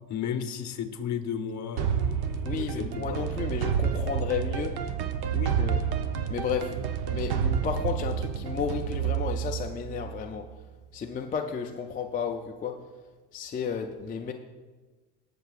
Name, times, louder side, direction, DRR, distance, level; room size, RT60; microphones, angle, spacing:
voice 1, 0.1-3.2 5.3-5.6, left 8 dB, 35° left, 1.0 m, -34 dB
sound 1, 1.8-10.6, right 8 dB, 50° right, 0.9 m, -29 dB
voice 2, 2.4-4.8 5.6-5.8 6.3-6.8 7.1-10.5 10.9-12.9 13.3-14.3, left 7 dB, 20° left, 0.3 m, -32 dB
19.0 x 6.9 x 2.4 m
supercardioid pair, 120°, 48 cm